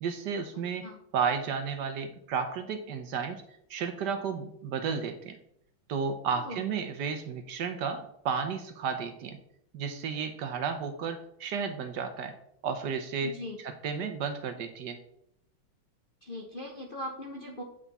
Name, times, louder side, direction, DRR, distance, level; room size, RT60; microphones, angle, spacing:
voice 1, 0.0-0.9 1.1-3.4 3.7-5.4 5.9-9.4 9.7-12.3 12.6-13.3 13.6-15.0, right 6 dB, 65° right, 7 dB, 1.2 m, -33 dB
voice 2, 6.3-6.6 13.2-13.6 16.2-17.6, left 1 dB, 45° left, -1 dB, 0.7 m, -39 dB
8.2 x 5.7 x 4.1 m, 0.74 s
omnidirectional pair, 2.2 m